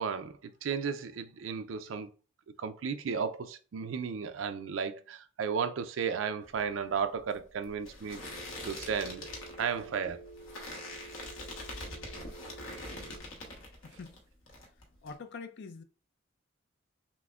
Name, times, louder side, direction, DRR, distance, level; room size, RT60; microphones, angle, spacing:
voice 1, 0.0-2.1 2.6-8.2 8.6-9.3 9.6-10.2, right 6 dB, 70° right, 0.4 m, -34 dB
sound 1, 6.4-14.2 14.5-15.1, left 1 dB, 80° left, 1.0 m, -44 dB
Telephone, 8.2-13.2, right 3 dB, 5° left, 0.9 m, -50 dB
voice 2, 13.5-14.2 15.0-15.8, left 4 dB, 60° left, 0.4 m, -45 dB
5.9 x 2.1 x 2.3 m
head